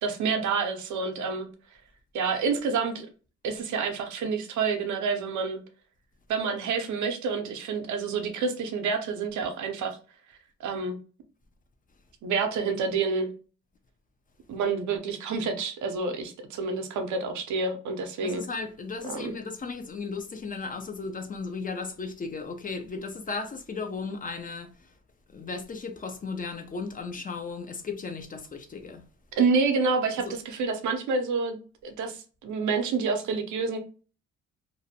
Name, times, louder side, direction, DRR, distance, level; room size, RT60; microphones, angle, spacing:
voice 1, 0.0-1.5 2.1-3.1 3.4-5.6 6.3-10.0 10.6-11.0 12.2-13.3 14.5-18.4 19.0-19.3 29.4-31.6 31.8-33.8, right 4 dB, 75° right, 0.6 m, -28 dB
voice 2, 18.2-24.9 25.3-29.0 30.2-30.3, left 4 dB, 30° left, 0.4 m, -35 dB
2.6 x 2.1 x 2.7 m
cardioid pair, 90°, 30 cm